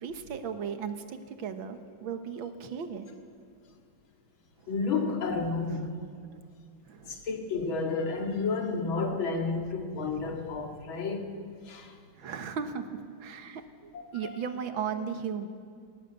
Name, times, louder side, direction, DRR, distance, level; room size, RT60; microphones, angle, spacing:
voice 1, 0.0-3.1 4.6-4.7 6.8-7.2 12.2-15.5, right 7 dB, 80° right, 9 dB, 2.1 m, -36 dB
voice 2, 4.7-6.0 7.1-11.3 11.6-11.9 14.2-14.4, left 4 dB, 90° left, 3 dB, 2.8 m, -31 dB
19.0 x 18.5 x 8.0 m, 2.2 s
omnidirectional pair, 2.2 m